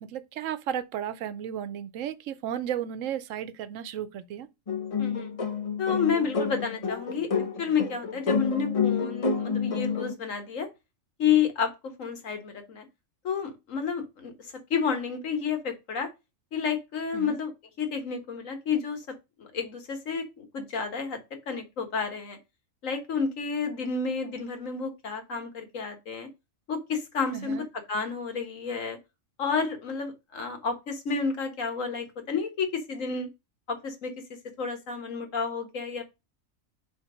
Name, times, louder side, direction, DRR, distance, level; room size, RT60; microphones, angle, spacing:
voice 1, 0.0-4.5 17.1-17.4 27.3-27.7, right 9 dB, 70° right, 1.0 m, -34 dB
sound 1, 4.7-10.1, left 5 dB, 35° left, 0.6 m, -29 dB
voice 2, 5.0-5.3 5.8-7.3 7.6-10.7 11.2-12.9 13.2-16.1 16.5-17.5 17.8-19.0 19.4-21.2 21.5-22.4 22.8-26.3 26.7-29.0 29.4-33.3 33.7-34.1 34.6-36.0, left 6 dB, 70° left, 1.7 m, -30 dB
5.1 x 4.6 x 4.9 m
omnidirectional pair, 1.4 m